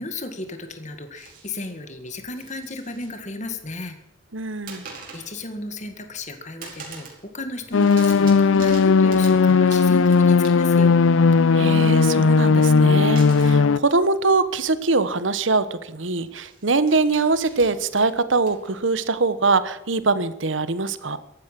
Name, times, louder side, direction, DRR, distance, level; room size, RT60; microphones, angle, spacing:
voice 1, 0.0-4.0 5.1-11.0, left 2 dB, 35° left, 7 dB, 1.9 m, -34 dB
sound 1, 1.1-1.7 2.2-3.1 3.4-4.0 4.7-5.4 5.8-6.3 6.6-7.2 7.5-10.9 13.2-13.6 14.6-14.7 15.0-15.2 16.3-18.9, right 4 dB, 45° right, 4.8 m, -43 dB
voice 2, 4.3-4.9 11.5-21.2, right 3 dB, 75° right, 13 dB, 1.3 m, -23 dB
sound 2, 7.7-13.8, left 4 dB, 85° left, 0.5 m, -16 dB
15.0 x 11.5 x 7.6 m, 0.87 s
head